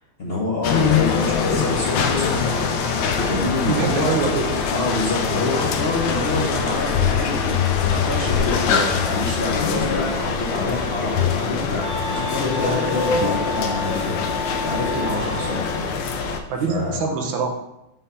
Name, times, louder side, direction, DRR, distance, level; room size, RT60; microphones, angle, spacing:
voice 1, 0.2-2.7 3.1-4.2 4.7-15.9 16.6-17.0, left 2 dB, 45° left, -3 dB, 0.9 m, -27 dB
sound 1, 0.6-16.4, left 6 dB, 75° left, 1.3 m, -23 dB
voice 2, 3.7-4.7 16.5-17.5, right 5 dB, 85° right, 2 dB, 1.6 m, -24 dB
Wind instrument woodwind instrument, 10.8-15.9, left 1 dB, 60° right, 1.4 m, -32 dB
5.4 x 3.5 x 5.5 m, 0.88 s
omnidirectional pair, 2.1 m